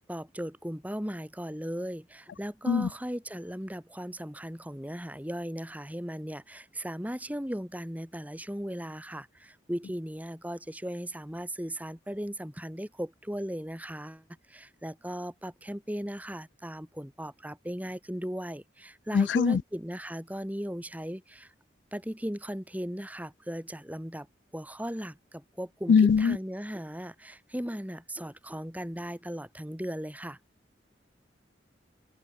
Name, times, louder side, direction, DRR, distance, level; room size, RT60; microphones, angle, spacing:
voice 1, 0.0-21.5 21.9-24.3 24.5-30.4, equal, 10° right, 3.4 m, -37 dB
voice 2, 19.1-19.6 25.9-26.4, left 6 dB, 75° left, 0.3 m, -21 dB
head